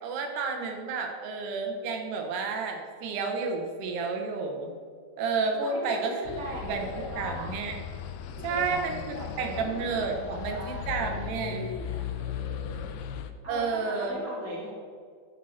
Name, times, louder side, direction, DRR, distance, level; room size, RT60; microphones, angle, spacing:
voice 1, 0.0-4.7 5.2-6.2 6.6-6.8 7.2-7.7 8.4-9.0 9.4-11.7 13.5-14.2, right 4 dB, 80° right, 3 dB, 3.2 m, -31 dB
voice 2, 5.5-7.5 8.4-12.9 13.4-14.7, equal, 15° left, -5 dB, 0.5 m, -40 dB
sound 1, 6.2-13.3, left 8 dB, 85° left, 2.6 m, -37 dB
13.0 x 6.5 x 4.3 m, 2.1 s
omnidirectional pair, 4.6 m